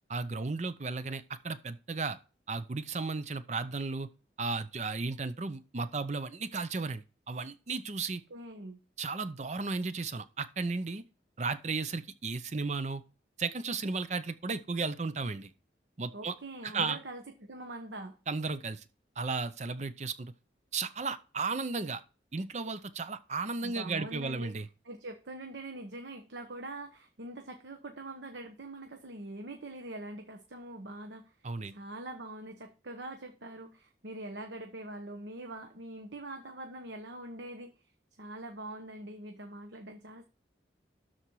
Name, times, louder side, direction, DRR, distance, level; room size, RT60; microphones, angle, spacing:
voice 1, 0.1-2.2 2.5-4.1 4.4-8.2 9.0-11.0 11.4-13.0 13.4-15.5 16.0-16.3 16.6-17.0 18.3-18.8 19.2-20.3 20.7-22.0 22.3-24.7 31.4-31.8, right 4 dB, 40° right, 0.6 m, -34 dB
voice 2, 8.3-8.8 16.1-18.2 23.6-24.5 24.8-31.3 31.7-37.7 38.2-40.2, right 1 dB, 85° right, 1.1 m, -43 dB
12.5 x 4.4 x 4.7 m
head